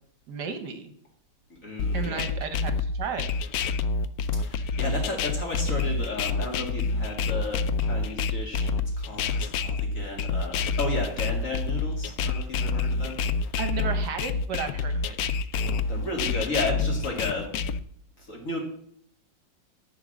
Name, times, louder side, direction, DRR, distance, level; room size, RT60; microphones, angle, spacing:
voice 1, 0.3-0.9 1.9-3.3 13.6-15.2, right 6 dB, 65° right, 8 dB, 1.5 m, -33 dB
voice 2, 1.5-2.3 4.3-8.7 9.0-13.6 15.5-17.5 18.2-18.6, left 2 dB, 45° left, 0 dB, 2.7 m, -33 dB
sound 1, 1.8-17.8, left 4 dB, 70° left, 0.8 m, -27 dB
10.5 x 4.9 x 7.4 m, 0.65 s
omnidirectional pair, 2.0 m